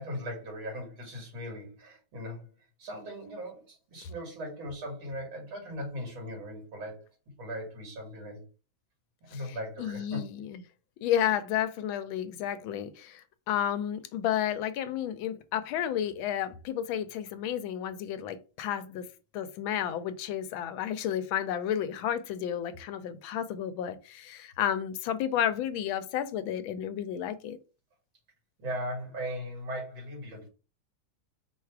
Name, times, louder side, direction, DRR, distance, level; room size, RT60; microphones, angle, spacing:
voice 1, 0.0-2.5 2.8-7.1 7.4-8.4 9.3-10.3 28.6-30.5, equal, 75° right, 2.9 m, -38 dB
voice 2, 9.8-10.6 11.0-19.0 19.3-27.6, left 10 dB, 80° left, 1.3 m, -32 dB
4.7 x 2.4 x 4.6 m
omnidirectional pair, 2.2 m